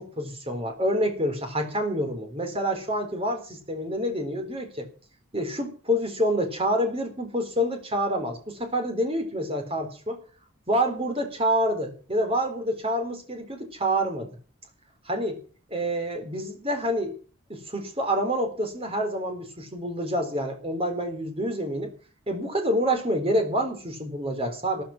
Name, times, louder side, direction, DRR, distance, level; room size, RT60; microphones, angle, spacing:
voice 1, 0.0-4.9 5.3-10.2 10.7-14.3 15.0-15.4 15.7-17.1 17.5-21.9 22.3-24.8, equal, 25° right, 5 dB, 3.9 m, -27 dB
13.5 x 12.5 x 6.0 m, 0.38 s
head